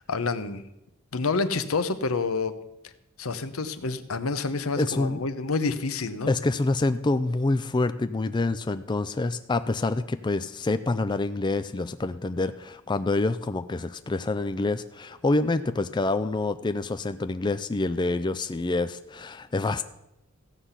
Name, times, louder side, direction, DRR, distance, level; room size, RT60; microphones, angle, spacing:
voice 1, 0.1-0.6 1.1-2.5 3.2-6.3, left 4 dB, 85° left, 11 dB, 0.9 m, -28 dB
voice 2, 4.8-5.2 6.3-19.9, left 2 dB, 20° left, 10 dB, 0.4 m, -27 dB
15.0 x 5.8 x 8.1 m, 0.88 s
head